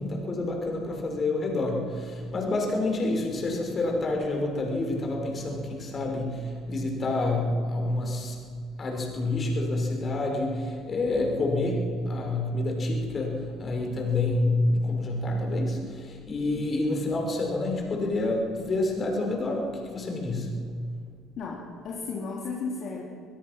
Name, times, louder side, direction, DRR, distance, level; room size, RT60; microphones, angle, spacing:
voice 1, 0.0-8.5 8.8-20.8, left 2 dB, 35° left, 1 dB, 6.2 m, -28 dB
voice 2, 21.4-23.0, left 4 dB, 50° left, -2 dB, 3.1 m, -34 dB
23.0 x 22.0 x 6.3 m, 2.1 s
figure-of-eight pair, 55°, 0 cm